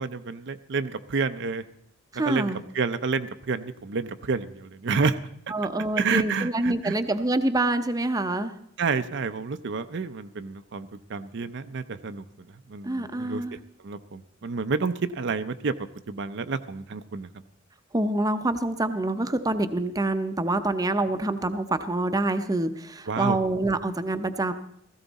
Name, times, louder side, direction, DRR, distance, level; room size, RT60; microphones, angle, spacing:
voice 1, 0.0-1.6 2.3-5.2 5.9-7.0 8.8-13.6 13.8-17.3 23.1-23.4, right 4 dB, 65° right, 10 dB, 0.6 m, -29 dB
voice 2, 2.1-2.6 5.5-8.5 12.8-13.5 17.9-24.5, right 2 dB, 20° right, 9 dB, 0.7 m, -26 dB
16.5 x 15.0 x 4.1 m, 0.71 s
head